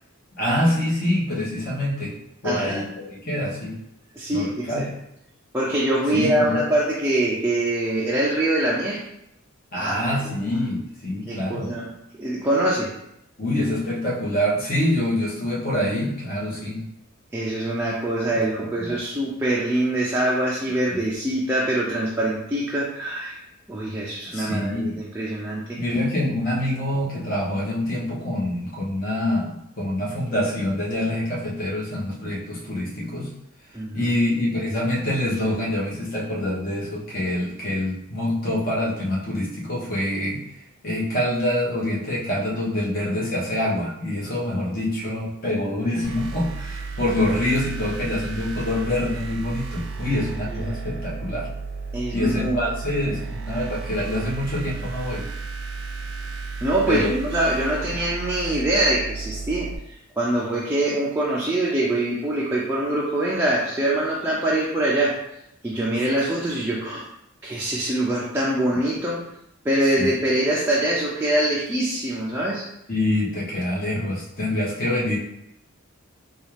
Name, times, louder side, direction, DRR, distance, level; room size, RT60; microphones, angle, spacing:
voice 1, 0.4-2.1 2.4-3.7 4.3-4.8 6.1-6.6 9.7-11.7 13.4-16.8 18.3-18.4 18.8-19.0 20.9-21.0 24.3-25.0 25.8-33.3 33.9-40.4 40.8-51.5 52.1-55.2 56.9-57.1 70.0-70.1 72.9-75.2, left 1 dB, 45° left, -5 dB, 1.1 m, -25 dB
voice 2, 2.4-2.9 4.2-4.9 5.5-9.0 9.7-10.5 11.3-11.9 12.2-12.9 17.3-23.4 23.7-25.8 33.7-34.1 50.5-50.6 51.9-52.6 56.6-65.2 65.6-67.0 67.4-69.2 69.6-72.6, right 1 dB, 10° right, -5 dB, 0.4 m, -24 dB
sound 1, 46.0-59.7, right 4 dB, 70° right, 0.5 m, -33 dB
4.1 x 2.4 x 3.3 m, 0.80 s
head